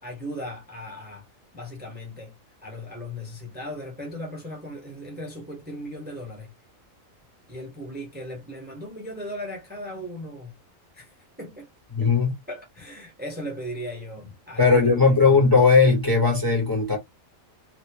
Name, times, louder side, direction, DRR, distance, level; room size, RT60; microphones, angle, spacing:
voice 1, 0.0-1.3 1.5-2.3 2.6-6.5 7.5-10.6 10.9-11.7 12.0-12.1 12.5-15.0, equal, 10° right, 1.1 m, -37 dB
voice 2, 11.9-12.3 14.6-17.0, left 4 dB, 15° left, 1.2 m, -18 dB
3.1 x 2.8 x 2.9 m
omnidirectional pair, 1.4 m